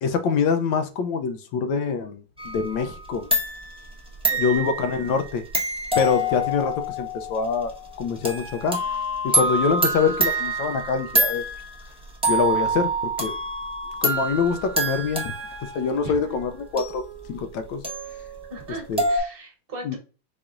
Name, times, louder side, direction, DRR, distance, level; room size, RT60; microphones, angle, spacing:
voice 1, 0.0-3.3 4.4-5.4 6.0-7.7 8.0-8.8 9.2-11.4 12.3-12.9 13.2-13.3 14.0-15.3 15.7-17.0 17.3-17.8 18.9-19.0 19.9-20.0, left 5 dB, 75° left, 1.1 m, -24 dB
sound 1, 2.4-3.0 3.3-11.8 12.2-19.2, right 1 dB, 5° right, 0.5 m, -27 dB
voice 2, 4.3-4.7 9.3-9.5 16.0-16.1 18.5-20.0, right 2 dB, 30° right, 1.5 m, -38 dB
4.9 x 4.1 x 2.4 m
omnidirectional pair, 2.4 m